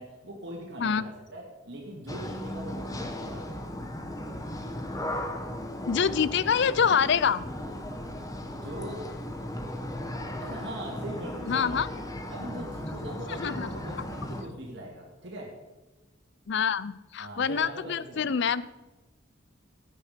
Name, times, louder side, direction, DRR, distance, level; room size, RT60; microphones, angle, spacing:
voice 1, 0.0-3.6 8.4-9.4 10.4-12.0 12.3-15.5 17.2-18.4, right 1 dB, 60° right, -2 dB, 2.5 m, -41 dB
sound 1, 2.1-14.4, left 1 dB, 20° left, 1.2 m, -36 dB
voice 2, 5.9-7.4 11.5-11.9 13.4-13.7 16.5-18.6, left 7 dB, 60° left, 18 dB, 0.5 m, -26 dB
16.0 x 8.9 x 5.2 m, 1.1 s
head